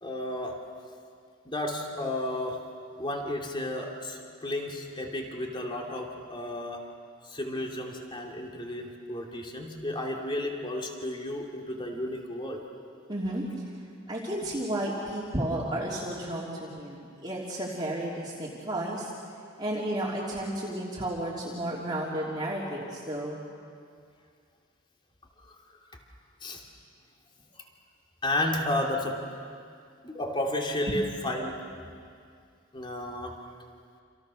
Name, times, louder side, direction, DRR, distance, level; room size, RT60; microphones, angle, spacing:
voice 1, 0.0-0.6 1.4-2.6 3.0-6.9 7.2-12.6 25.4-25.8 26.4-26.6 27.5-27.7 28.2-29.2 30.0-31.6 32.7-33.4, left 1 dB, 25° left, 1 dB, 2.8 m, -32 dB
voice 2, 13.1-13.4 14.1-19.1 19.6-23.4 30.9-31.0, right 1 dB, 20° right, -5 dB, 3.1 m, -32 dB
29.5 x 28.0 x 6.5 m, 2.3 s
head